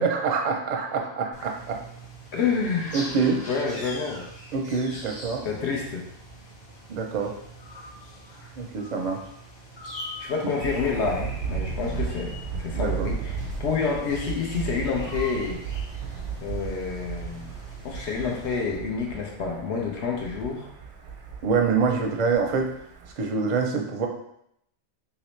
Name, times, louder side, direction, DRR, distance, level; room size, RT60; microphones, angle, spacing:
voice 1, 0.0-1.8 2.9-3.4 4.5-5.5 6.9-7.3 8.6-9.2 12.7-13.1 21.4-22.7 23.2-24.1, right 5 dB, 50° right, 2 dB, 0.5 m, -25 dB
sound 1, 1.3-18.6, equal, 40° left, 0.9 m, -43 dB
voice 2, 2.3-3.0 3.5-4.3 5.4-6.1 10.2-15.6 16.4-17.5 17.8-20.7, left 5 dB, 75° left, 0 dB, 0.9 m, -28 dB
Thunder, 10.6-23.1, right 6 dB, 85° right, 0.9 m, -35 dB
3.0 x 2.9 x 3.1 m, 0.73 s
omnidirectional pair, 1.2 m